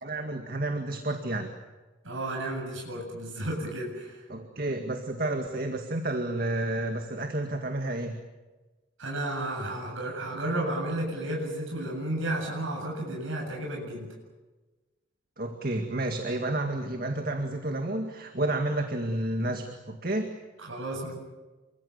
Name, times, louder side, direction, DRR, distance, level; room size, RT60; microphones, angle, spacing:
voice 1, 0.0-1.5 4.3-8.2 15.4-20.3, right 2 dB, 45° right, 5 dB, 2.1 m, -30 dB
voice 2, 2.0-4.3 9.0-14.1 20.6-21.1, right 1 dB, 90° right, -1 dB, 7.9 m, -32 dB
28.0 x 24.5 x 7.2 m, 1.2 s
head